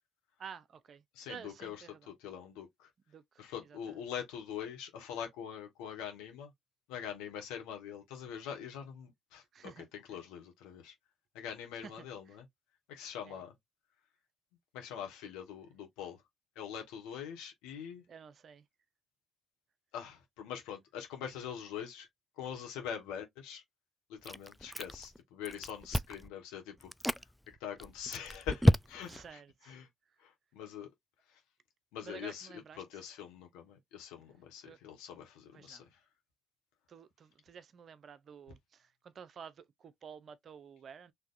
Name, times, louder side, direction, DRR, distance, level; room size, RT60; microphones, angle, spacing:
voice 1, 0.4-1.0 1.3-2.1 3.1-3.8 9.5-10.2 11.7-12.4 13.3-13.4 18.1-18.6 29.1-29.8 32.0-33.0 34.6-34.8 35.5-35.8 36.9-41.1, right 7 dB, 50° right, 0.6 m, -51 dB
voice 2, 1.1-1.8 2.1-2.9 3.4-6.5 6.9-10.9 11.3-12.4 12.9-13.5 14.7-16.2 16.5-18.0 19.9-22.1 22.4-23.6 24.1-26.9 27.6-29.9 30.2-30.9 31.9-35.9, left 8 dB, 75° left, 1.5 m, -43 dB
Chewing mastication, 24.2-25.2 25.4-26.3 26.8-27.2 27.8-29.2, equal, ahead, 0.3 m, -29 dB
4.6 x 3.3 x 2.6 m
hypercardioid pair, 50°, 0 cm